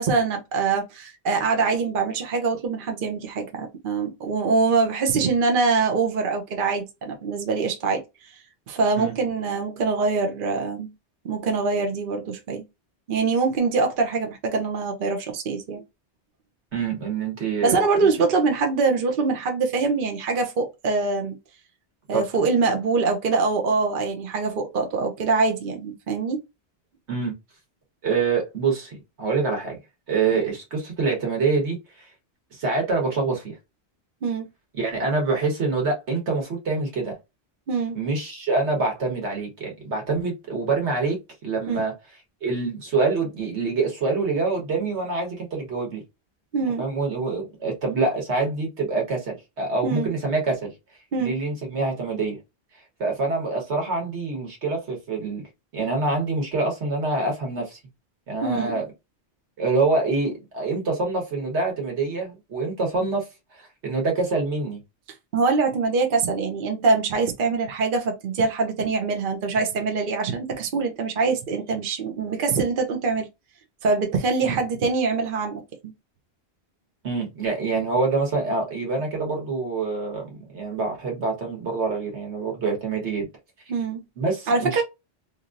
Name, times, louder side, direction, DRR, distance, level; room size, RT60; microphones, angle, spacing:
voice 1, 0.0-8.0 8.7-10.9 11.2-12.6 13.1-15.8 17.6-21.4 22.1-26.4 34.2-34.5 37.7-38.0 41.7-41.8 46.5-46.8 49.8-50.1 51.1-51.3 58.4-58.8 65.3-73.3 73.8-75.6 83.7-84.0 84.5-84.8, right 4 dB, 55° right, 0.8 m, -24 dB
voice 2, 16.7-18.1 22.1-22.2 27.1-27.3 28.0-29.8 30.1-32.1 32.5-33.6 34.8-37.2 37.9-41.2 41.4-41.9 42.4-46.0 46.8-50.7 51.2-52.4 53.0-55.4 55.7-57.8 58.3-58.8 59.6-64.8 74.4-74.6 77.0-83.3 84.2-84.8, right 3 dB, 90° right, 1.5 m, -26 dB
2.9 x 2.8 x 2.4 m
omnidirectional pair, 1.1 m